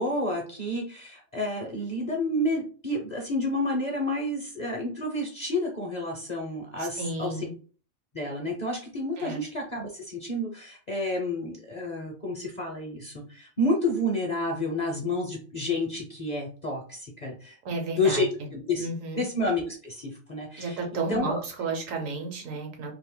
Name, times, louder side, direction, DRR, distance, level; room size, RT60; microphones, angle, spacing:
voice 1, 0.0-7.4 8.1-17.6 18.0-18.9 19.1-20.8 21.1-21.4, left 1 dB, 45° left, 0 dB, 0.6 m, -30 dB
voice 2, 6.8-7.5 9.2-9.4 17.6-18.3 18.8-19.3 20.6-22.9, right 3 dB, 75° right, 2 dB, 1.3 m, -32 dB
2.8 x 2.5 x 3.7 m, 0.39 s
omnidirectional pair, 1.4 m